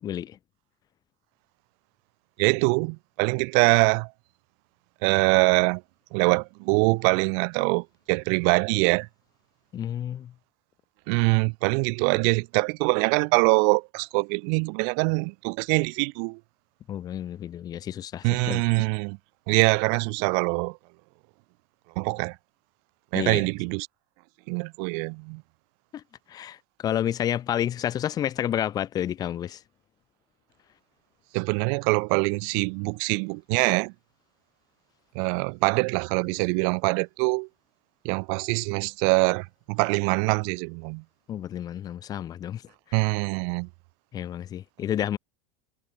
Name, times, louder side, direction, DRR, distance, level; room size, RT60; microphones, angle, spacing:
voice 1, 0.0-0.4 9.7-10.3 16.9-18.6 23.1-23.4 25.9-26.0 26.3-26.6 26.8-29.6 41.3-42.6 42.9-43.1 44.1-45.2, left 10 dB, 20° left, 0.5 m, -30 dB
voice 2, 2.4-4.1 5.0-5.8 6.1-9.1 11.1-16.4 18.2-19.2 19.5-20.8 22.0-22.3 23.1-23.9 24.5-25.4 31.3-33.9 35.1-37.5 38.0-41.0 42.9-43.7, right 40 dB or more, 45° right, 0.6 m, -24 dB
supercardioid pair, 170°, 21 cm